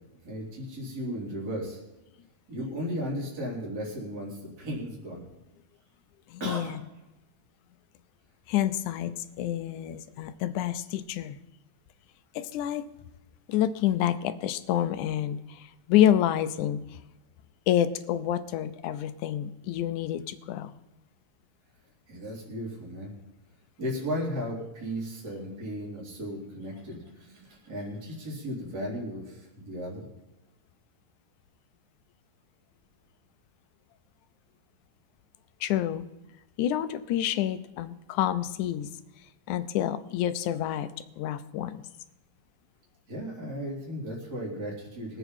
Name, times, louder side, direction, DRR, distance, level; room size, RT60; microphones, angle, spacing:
voice 1, 0.2-1.8 2.5-5.2 6.4-6.7 22.1-23.1 23.8-30.1 43.1-45.2, equal, 30° right, -4 dB, 4.1 m, -35 dB
voice 2, 6.3-6.8 8.5-11.4 12.4-12.8 13.5-17.0 17.7-20.7 35.6-36.0 36.6-38.9 39.5-40.9 41.2-41.9, left 11 dB, 80° left, 12 dB, 2.2 m, -28 dB
23.5 x 8.1 x 4.3 m, 1.0 s
omnidirectional pair, 3.5 m